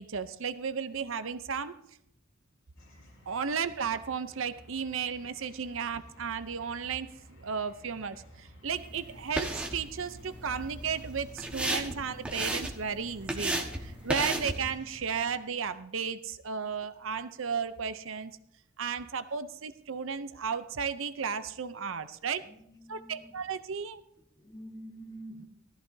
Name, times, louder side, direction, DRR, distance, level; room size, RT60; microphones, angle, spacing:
voice 1, 0.0-1.8 3.3-18.3 18.8-22.5 22.9-24.0, right 6 dB, 65° right, 12 dB, 0.6 m, -34 dB
sound 1, 2.8-15.4, equal, 60° left, 5.2 m, -55 dB
sound 2, 8.7-14.7, right 1 dB, 5° right, 1.3 m, -35 dB
voice 2, 22.4-23.6 24.1-25.5, right 1 dB, 15° left, 4 dB, 1.3 m, -48 dB
18.5 x 14.0 x 2.7 m, 0.74 s
head